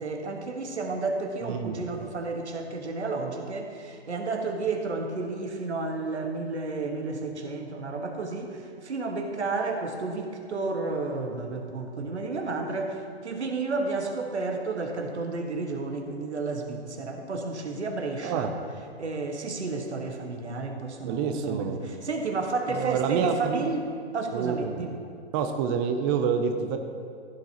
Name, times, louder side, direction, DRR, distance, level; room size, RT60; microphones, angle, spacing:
voice 1, 0.0-18.5 19.0-23.8 24.1-25.0, right 3 dB, 90° right, 3 dB, 1.5 m, -31 dB
voice 2, 1.4-1.8 18.2-18.5 21.0-21.8 22.7-23.7 24.3-24.8 25.3-26.8, right 6 dB, 20° right, 6 dB, 0.5 m, -27 dB
15.0 x 7.7 x 2.9 m, 2.5 s
hypercardioid pair, 130°, 33 cm